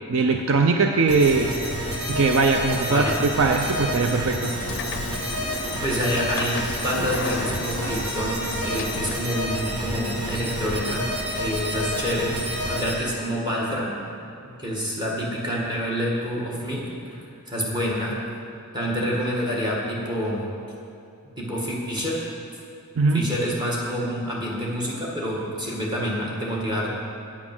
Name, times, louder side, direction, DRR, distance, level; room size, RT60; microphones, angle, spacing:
voice 1, 0.1-1.5 2.1-4.5 23.0-23.3, right 4 dB, 60° right, 4 dB, 0.5 m, -20 dB
sound 1, 1.1-12.9, equal, 85° right, 1.8 m, -29 dB
voice 2, 2.8-3.2 5.8-11.1 11.3-14.0 14.4-18.2 18.7-20.5 21.4-22.2 23.1-26.9, equal, 20° right, -4 dB, 1.8 m, -27 dB
Train / Sliding door, 4.6-9.7, left 5 dB, 50° left, 0.5 m, -35 dB
8.8 x 8.4 x 6.0 m, 2.5 s
head